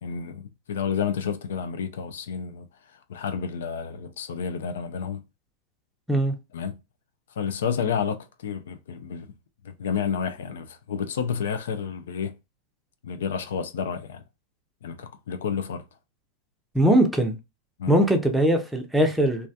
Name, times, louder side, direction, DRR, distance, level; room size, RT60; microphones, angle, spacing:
voice 1, 0.0-2.7 3.1-5.2 6.5-6.8 7.4-9.3 9.6-12.3 13.0-14.2 14.8-15.8 17.8-18.0, left 7 dB, 80° left, 0.3 m, -30 dB
voice 2, 16.7-17.4 17.9-19.5, right 1 dB, 5° right, 0.5 m, -20 dB
2.3 x 2.1 x 2.6 m
hypercardioid pair, 125°, 0 cm